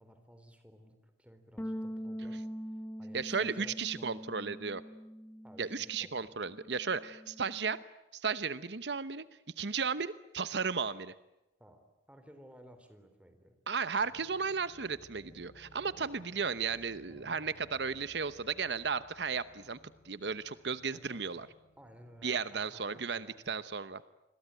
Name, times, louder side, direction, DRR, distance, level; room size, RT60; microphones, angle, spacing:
voice 1, 0.0-2.4 3.0-4.5 5.4-6.4 11.6-13.6 20.9-21.5 21.8-23.6, equal, 5° right, 8 dB, 3.7 m, -56 dB
sound 1, 1.6-6.1 6.4-7.8, equal, 10° left, 1.0 m, -43 dB
voice 2, 3.1-4.8 5.6-7.8 8.1-9.3 9.6-11.1 13.7-19.8 20.0-21.5 22.2-24.0, right 5 dB, 70° right, 14 dB, 0.9 m, -34 dB
sound 2, 13.9-22.4, left 1 dB, 30° left, 4.9 m, -60 dB
29.0 x 22.0 x 9.1 m, 0.95 s
head